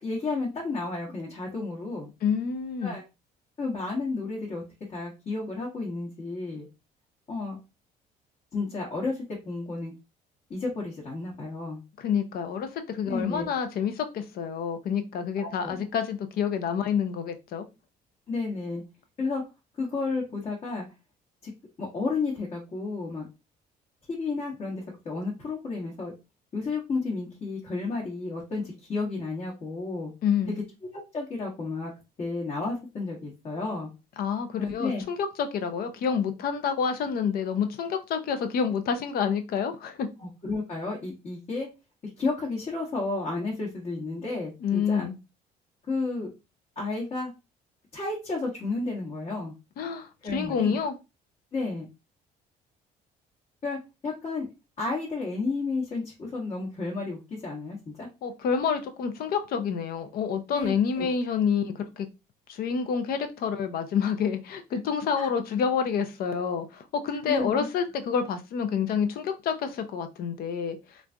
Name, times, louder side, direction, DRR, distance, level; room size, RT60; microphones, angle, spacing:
voice 1, 0.0-2.1 2.8-3.0 3.6-4.6 4.9-6.7 7.3-7.6 8.5-9.9 10.5-11.8 13.1-13.5 15.4-15.8 18.3-18.8 19.2-19.4 19.8-20.8 21.4-21.5 21.8-23.3 24.1-26.1 26.5-30.1 30.5-30.6 30.9-31.9 32.2-33.9 34.6-35.0 40.2-41.7 42.2-45.1 45.9-46.3 46.8-47.3 47.9-49.5 50.2-50.8 51.5-51.9 53.6-54.5 54.8-58.1 60.5-61.2 65.1-65.3 67.3-67.7, left 3 dB, 40° left, -3 dB, 1.0 m, -32 dB
voice 2, 2.2-3.0 12.0-17.7 30.2-30.6 34.2-40.1 44.6-45.2 49.8-50.9 58.2-62.1 62.5-71.0, left 7 dB, 60° left, 9 dB, 0.6 m, -28 dB
3.1 x 2.6 x 2.2 m, 0.26 s
cardioid pair, 110°, 17 cm